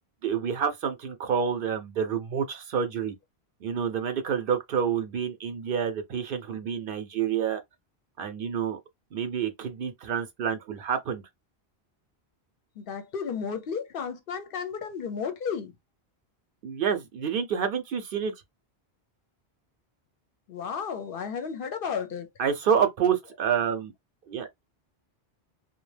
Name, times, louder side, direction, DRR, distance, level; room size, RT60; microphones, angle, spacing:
voice 1, 0.2-3.1 3.6-7.6 8.2-8.8 9.1-11.2 16.6-18.3 22.4-23.9 24.3-24.5, right 7 dB, 65° right, 0.7 m, -28 dB
voice 2, 12.8-15.7 20.5-22.3, left 6 dB, 65° left, 0.7 m, -33 dB
2.3 x 2.1 x 3.2 m
omnidirectional pair, 1.1 m